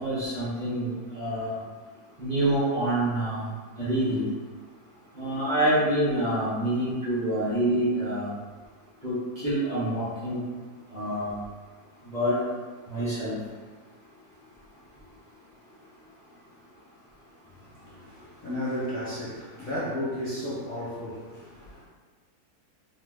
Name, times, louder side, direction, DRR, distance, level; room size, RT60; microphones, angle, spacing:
voice 1, 0.0-1.6 2.2-3.5 3.8-4.2 5.2-8.3 9.0-10.4 10.9-11.4 12.1-12.4 12.9-13.3, right 1 dB, 35° right, -10 dB, 0.8 m, -27 dB
voice 2, 17.6-21.8, left 1 dB, 50° left, -9 dB, 0.6 m, -34 dB
2.8 x 2.2 x 3.5 m, 1.4 s
omnidirectional pair, 1.6 m